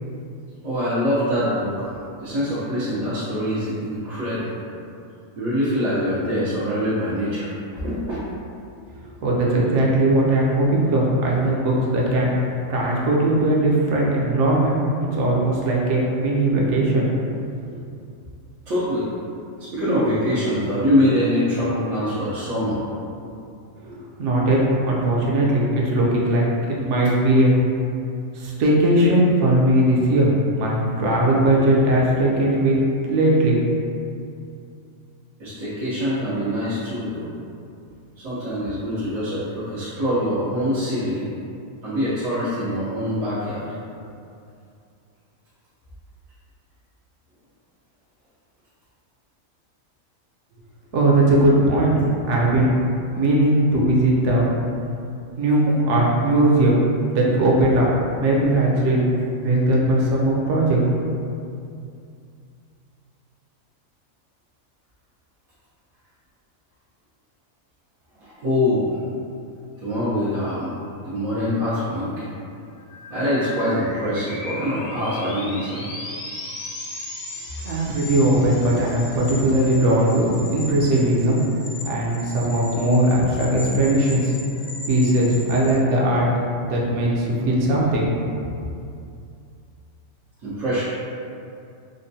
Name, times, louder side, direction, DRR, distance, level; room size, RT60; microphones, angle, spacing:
voice 1, 0.6-4.6 5.4-8.2 18.7-19.1 19.6-23.1 35.4-37.3 38.2-41.3 41.8-43.6 68.2-68.9 69.8-70.7 71.0-72.2 73.1-75.8 90.4-90.8, equal, 85° right, -12 dB, 1.3 m, -24 dB
voice 2, 9.2-12.3 12.7-14.8 15.1-17.1 17.6-17.7 23.8-27.5 28.3-32.7 33.0-33.6 50.9-52.0 52.3-52.8 53.1-54.4 55.4-56.8 57.1-57.9 58.2-59.0 59.4-60.8 77.6-81.4 81.8-84.3 84.9-86.3 86.6-88.1, right 1 dB, 65° right, -3 dB, 0.9 m, -19 dB
sound 1, 72.7-85.7, left 2 dB, 65° left, 1.0 m, -37 dB
4.9 x 2.2 x 2.6 m, 2.5 s
omnidirectional pair, 1.4 m